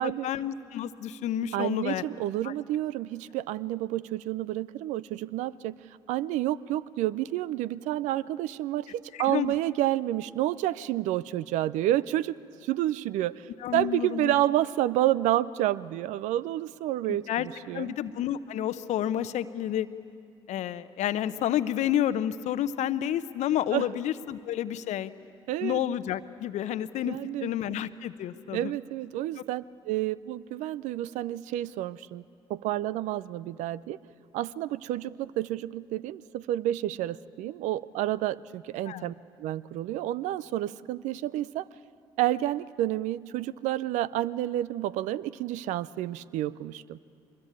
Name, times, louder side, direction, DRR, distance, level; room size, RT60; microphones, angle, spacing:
voice 1, 0.0-2.0 2.4-2.5 9.1-9.5 13.6-14.4 17.1-17.5 17.7-19.9 20.5-25.1 25.6-28.7 38.9-39.1, left 11 dB, 60° left, 13 dB, 0.8 m, -30 dB
voice 2, 1.5-5.8 6.1-12.4 12.6-17.9 23.7-23.9 25.5-25.8 27.1-27.5 28.5-32.2 32.5-34.0 34.3-41.7 42.2-47.0, right 14 dB, 70° right, 19 dB, 0.5 m, -29 dB
23.5 x 21.5 x 8.7 m, 2.4 s
hypercardioid pair, 50°, 13 cm